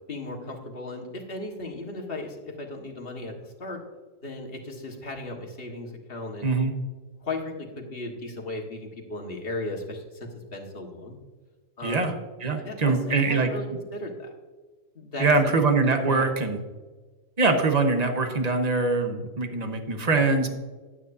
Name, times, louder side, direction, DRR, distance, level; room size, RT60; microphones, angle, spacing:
voice 1, 0.1-3.8 4.2-6.5 7.2-11.1 11.8-12.1 12.6-14.3 14.9-15.4 16.0-16.3, left 2 dB, 45° left, 0 dB, 1.7 m, -36 dB
voice 2, 6.4-6.7 11.8-12.1 12.4-13.5 15.2-16.6 17.4-20.5, right 3 dB, 35° right, 5 dB, 1.1 m, -23 dB
10.5 x 9.2 x 2.6 m, 1.3 s
omnidirectional pair, 1.4 m